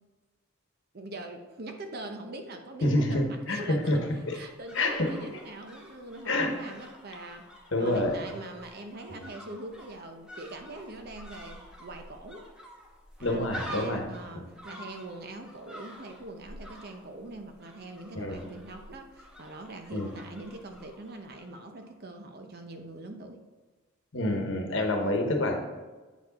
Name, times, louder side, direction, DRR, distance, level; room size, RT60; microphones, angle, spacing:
voice 1, 0.9-7.5 7.8-12.5 13.2-23.4 24.9-25.2, right 2 dB, 50° right, 5 dB, 0.7 m, -43 dB
voice 2, 2.8-4.0 4.3-4.4 4.7-5.1 6.2-6.5 7.7-8.1 9.1-9.2 13.2-14.0 14.3-14.5 18.1-18.4 19.9-20.1 24.1-25.6, left 1 dB, 65° left, 3 dB, 1.1 m, -27 dB
sound 1, 3.4-21.6 21.8-21.9, equal, 5° right, 1.0 m, -48 dB
8.0 x 4.7 x 4.1 m, 1.3 s
head